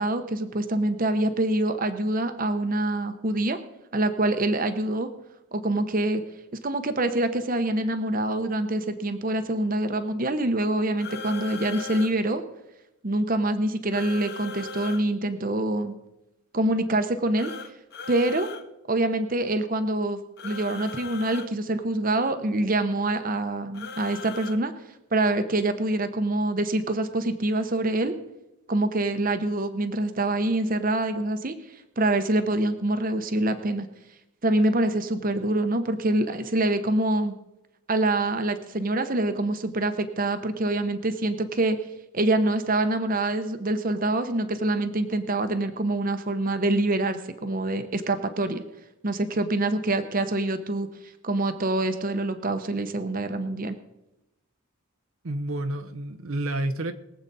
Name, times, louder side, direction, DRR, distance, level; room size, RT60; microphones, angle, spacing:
voice 1, 0.0-3.6 3.9-5.1 5.5-6.2 6.6-12.4 13.0-15.9 16.5-17.5 18.1-18.5 18.9-24.7 25.1-28.1 28.7-31.5 32.0-33.9 34.4-37.3 37.9-41.8 42.1-48.6 49.0-50.9 51.2-53.7, right 2 dB, 40° right, 9 dB, 0.9 m, -25 dB
sound 1, 11.0-12.1 13.9-15.0 17.4-18.6 20.4-21.5 23.7-24.6, left 5 dB, 45° left, 1.1 m, -38 dB
voice 2, 55.2-56.9, right 1 dB, 70° right, 7 dB, 0.8 m, -29 dB
22.0 x 8.0 x 4.1 m, 0.92 s
head